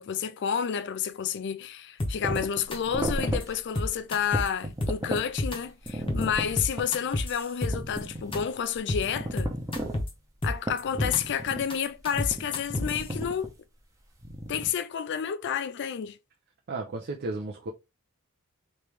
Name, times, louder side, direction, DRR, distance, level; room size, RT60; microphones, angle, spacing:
voice 1, 0.0-9.5 10.4-13.5 14.5-16.2, left 8 dB, 55° left, 0.4 m, -30 dB
sound 1, 2.0-2.4 2.7-2.8 3.1-3.4 3.8-4.5 4.8-5.6 5.9-6.2 6.6-8.0 8.3-8.4 8.7-9.0 9.4-10.1 10.4-11.2 11.5-13.0, left 1 dB, 25° left, 0.8 m, -29 dB
sound 2, 2.1-3.5 3.8-3.9 4.2-5.3 5.8-6.9 7.2-7.3 7.7-8.5 8.7-10.0 10.7-11.7 12.1-13.5 14.2-14.7, right 1 dB, 15° right, 0.7 m, -34 dB
voice 2, 16.7-17.7, right 2 dB, 50° right, 0.5 m, -34 dB
3.2 x 3.0 x 3.3 m
head